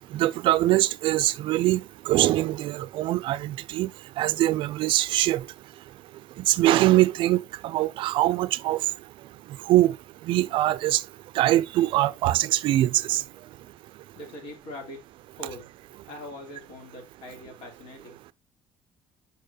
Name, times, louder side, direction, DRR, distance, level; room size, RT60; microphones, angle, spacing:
voice 1, 0.1-3.9 4.2-5.4 6.5-8.8 9.7-10.0 10.3-11.0 11.4-13.2, right 15 dB, 60° right, 0.4 m, -23 dB
voice 2, 14.2-15.0 15.4-15.7 16.1-18.3, left 1 dB, 70° left, 2.9 m, -42 dB
6.6 x 5.4 x 2.8 m
cardioid pair, 155°, 10 cm